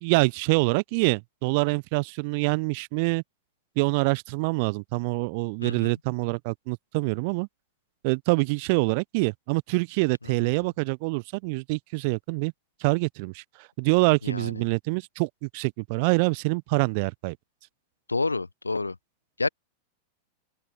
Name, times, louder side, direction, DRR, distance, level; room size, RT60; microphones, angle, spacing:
voice 1, 0.0-3.2 3.8-7.5 8.0-12.5 12.8-13.4 13.8-17.4, right 30 dB, 45° right, 0.8 m, -25 dB
voice 2, 5.6-5.9 14.2-14.6 18.1-18.9 19.4-19.5, left 3 dB, 80° left, 1.0 m, -28 dB
open air
figure-of-eight pair, 90°, 0 cm